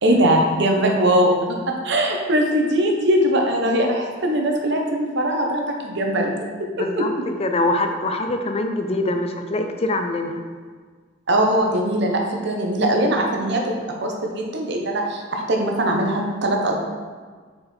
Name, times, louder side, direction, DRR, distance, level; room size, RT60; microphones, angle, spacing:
voice 1, 0.0-6.3 6.6-7.1 11.3-13.7 14.0-16.8, right 1 dB, 65° right, 1 dB, 1.0 m, -21 dB
voice 2, 6.8-7.1 7.4-10.4, left 2 dB, 30° left, 5 dB, 0.5 m, -23 dB
6.3 x 4.6 x 4.4 m, 1.6 s
head